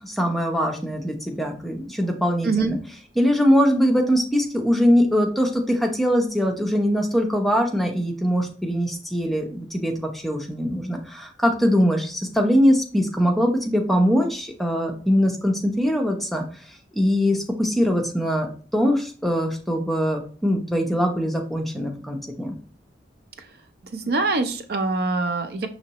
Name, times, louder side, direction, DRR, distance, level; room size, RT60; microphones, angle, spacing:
voice 1, 0.0-2.8 3.2-22.6, equal, ahead, 1 dB, 0.6 m, -22 dB
voice 2, 23.9-25.7, right 3 dB, 55° right, 8 dB, 0.4 m, -24 dB
5.7 x 3.0 x 2.9 m, 0.41 s
head